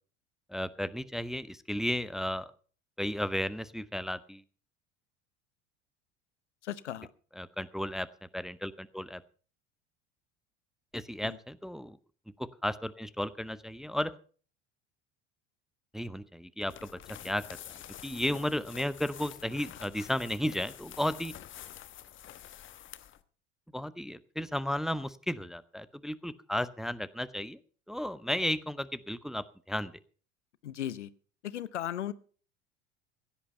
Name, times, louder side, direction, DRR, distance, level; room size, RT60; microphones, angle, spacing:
voice 1, 0.5-2.5 3.0-4.4 7.4-8.1 8.3-9.2 10.9-12.0 12.4-14.1 15.9-17.4 18.0-21.3 23.7-27.6 27.9-29.9, left 1 dB, ahead, 16 dB, 0.7 m, -34 dB
voice 2, 6.6-7.1 11.2-11.4 30.6-31.1 31.4-32.1, left 11 dB, 75° left, 18 dB, 0.8 m, -36 dB
sound 1, 16.6-23.2, left 11 dB, 35° left, 1.1 m, -48 dB
16.5 x 10.5 x 5.6 m, 0.42 s
figure-of-eight pair, 70°, 36 cm